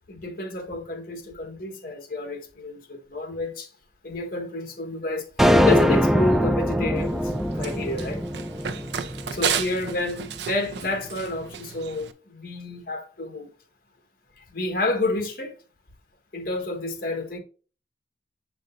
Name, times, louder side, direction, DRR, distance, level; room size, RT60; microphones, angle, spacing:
voice 1, 0.1-3.7 4.0-5.3 5.6-8.2 9.3-13.5 14.4-15.5 16.3-17.4, left 2 dB, 55° left, 1.4 m, -30 dB
sound 1, 5.4-9.8, equal, ahead, 0.3 m, -22 dB
Run, 7.0-12.1, right 7 dB, 75° right, 0.6 m, -33 dB
7.7 x 5.0 x 2.6 m
head